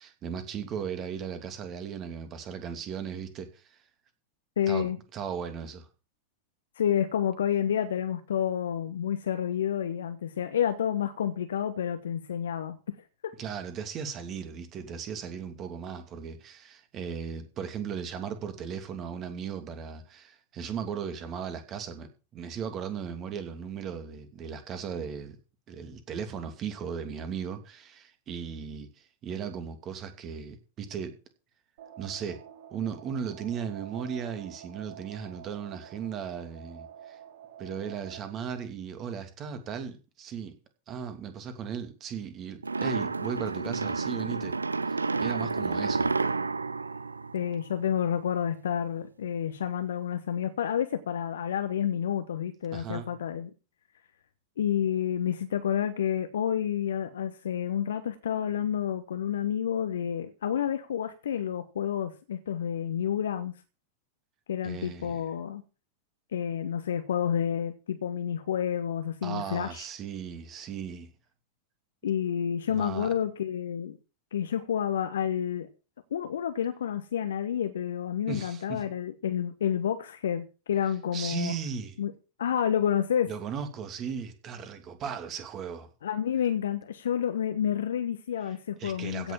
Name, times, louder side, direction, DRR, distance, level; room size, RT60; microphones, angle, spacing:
voice 1, 0.0-3.8 4.7-5.9 13.4-25.4 25.7-31.2 32.0-32.4 32.7-37.2 37.6-40.6 40.9-44.6 44.9-46.1 52.7-53.1 64.6-65.2 69.2-71.1 72.7-73.1 78.3-78.8 81.1-82.0 83.3-85.9 88.8-89.3, right 7 dB, 30° right, 2.7 m, -37 dB
voice 2, 4.6-5.0 6.8-12.8 13.2-13.3 47.3-53.5 54.6-63.5 64.5-65.6 66.3-69.9 72.0-74.0 74.3-75.7 76.1-81.5 82.0-82.1 82.4-83.3 86.0-89.3, left 9 dB, 65° left, 1.2 m, -29 dB
sound 1, 31.8-38.3, right 9 dB, 55° right, 2.6 m, -48 dB
sound 2, 42.6-48.0, right 4 dB, 80° right, 0.6 m, -30 dB
16.5 x 6.8 x 7.3 m
figure-of-eight pair, 90°, 0 cm